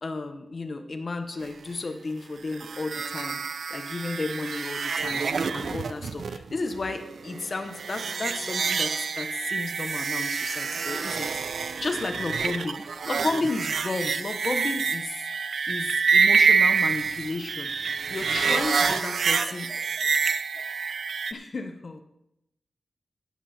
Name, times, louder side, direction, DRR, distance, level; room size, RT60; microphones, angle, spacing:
voice 1, 0.0-3.4 3.7-11.3 11.8-12.8 13.0-15.3 15.7-17.7 18.1-19.7 21.3-22.0, left 3 dB, 50° left, 8 dB, 1.0 m, -33 dB
sound 1, 2.5-21.3, right 5 dB, 75° right, 0.5 m, -27 dB
voice 2, 18.4-20.7, right 2 dB, 40° right, -1 dB, 3.3 m, -51 dB
16.5 x 7.4 x 4.2 m, 0.85 s
cardioid pair, 65°, 0 cm